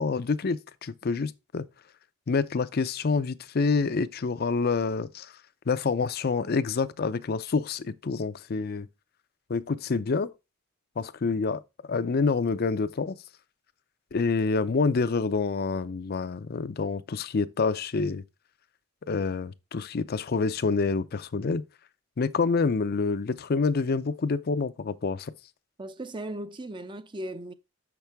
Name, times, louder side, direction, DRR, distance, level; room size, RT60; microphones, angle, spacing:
voice 1, 0.0-1.6 2.3-5.3 5.7-8.9 9.5-10.3 11.0-11.6 11.9-13.2 14.1-18.2 19.1-21.6 22.2-25.3, left 4 dB, 50° left, 0.5 m, -27 dB
voice 2, 25.8-27.5, right 1 dB, 25° right, 0.5 m, -37 dB
7.4 x 5.9 x 3.5 m
head